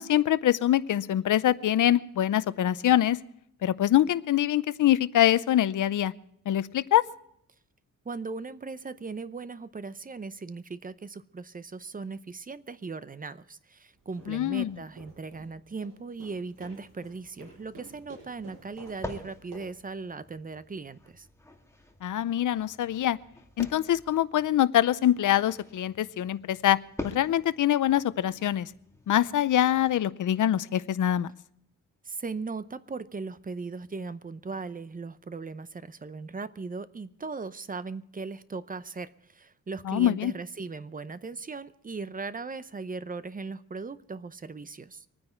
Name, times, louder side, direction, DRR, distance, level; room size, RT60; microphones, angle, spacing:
voice 1, 0.0-3.2 3.6-6.1 6.5-7.0 14.3-14.8 22.0-23.2 23.6-26.8 27.0-28.7 29.1-31.3 39.9-40.3, left 12 dB, 65° left, 0.7 m, -24 dB
voice 2, 8.1-21.3 32.1-45.0, right 4 dB, 25° right, 0.7 m, -38 dB
sound 1, 13.9-19.9, right 2 dB, 75° right, 7.0 m, -51 dB
sound 2, 17.6-30.0, left 1 dB, 10° left, 2.1 m, -46 dB
24.5 x 9.7 x 4.4 m
cardioid pair, 110°, 33 cm